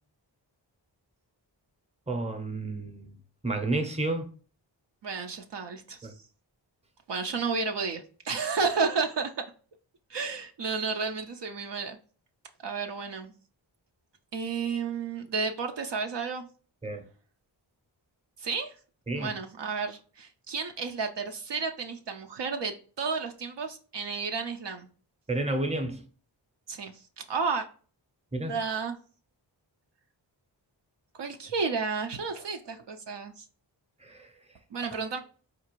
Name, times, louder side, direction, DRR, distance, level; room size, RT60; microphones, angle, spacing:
voice 1, 2.1-3.1 3.4-4.3 6.0-6.1 16.8-17.0 19.1-19.3 25.3-26.0 28.3-28.6 34.0-34.3, right 2 dB, 15° right, 0.7 m, -31 dB
voice 2, 5.0-6.2 7.1-9.3 10.1-12.0 12.6-13.3 14.3-16.4 18.4-18.8 19.2-24.9 26.7-27.7 28.5-29.0 31.1-33.4 34.7-35.2, right 4 dB, 65° right, 0.5 m, -32 dB
4.4 x 2.4 x 3.0 m
wide cardioid pair, 50°, 47 cm